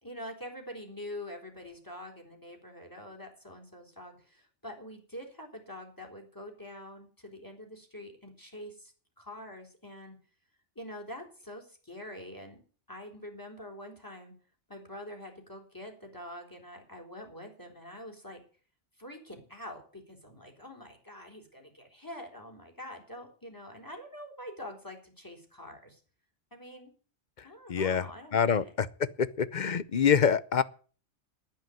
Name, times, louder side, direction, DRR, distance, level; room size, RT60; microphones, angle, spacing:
voice 1, 0.0-10.2 10.8-12.6 12.9-14.3 14.7-18.4 19.0-26.0 26.5-26.9 27.4-28.7, left 1 dB, 15° left, 3.8 m, -45 dB
voice 2, 27.7-28.0 28.3-28.6 29.4-30.6, left 7 dB, 45° left, 0.8 m, -25 dB
10.5 x 9.2 x 9.1 m
omnidirectional pair, 1.2 m